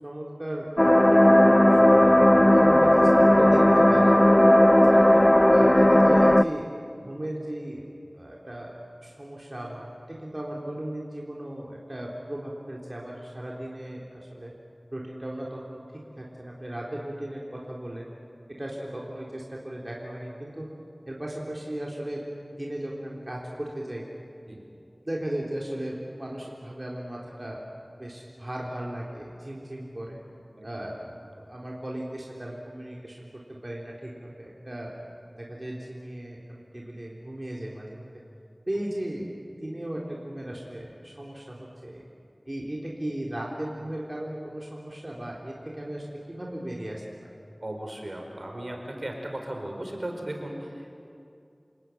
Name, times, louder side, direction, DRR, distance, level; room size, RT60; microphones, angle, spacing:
voice 1, 0.0-4.1 4.8-5.2 5.5-6.7 7.0-7.8 8.1-8.8 9.0-14.5 14.9-18.1 18.6-20.7 21.1-24.1 24.5-24.6 25.0-27.6 28.0-30.2 30.6-31.0 31.3-34.9 35.3-38.1 38.7-42.0 42.5-47.0, right 1 dB, 35° right, -3 dB, 3.7 m, -36 dB
sound 1, 0.8-6.4, left 1 dB, 25° left, 0.6 m, -16 dB
voice 2, 30.6-30.9 47.6-50.9, right 1 dB, 60° right, 2 dB, 4.7 m, -36 dB
29.0 x 19.0 x 9.3 m, 2.6 s
wide cardioid pair, 45°, 0 cm